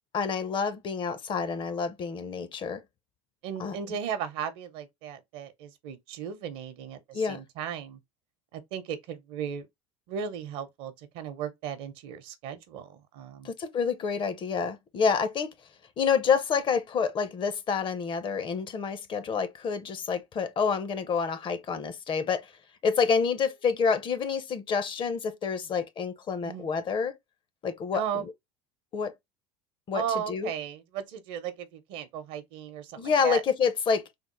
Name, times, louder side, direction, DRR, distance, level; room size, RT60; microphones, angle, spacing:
voice 1, 0.1-2.8 3.6-3.8 7.1-7.4 13.4-15.5 16.0-22.5 22.8-27.1 27.6-28.0 28.9-29.1 29.9-30.5 33.0-34.0, left 6 dB, 35° left, 0.5 m, -28 dB
voice 2, 3.4-8.0 8.5-9.7 10.1-13.5 26.4-26.7 27.9-28.3 29.9-33.4, right 8 dB, 65° right, 0.8 m, -36 dB
3.5 x 2.0 x 3.0 m
hypercardioid pair, 95°, 15 cm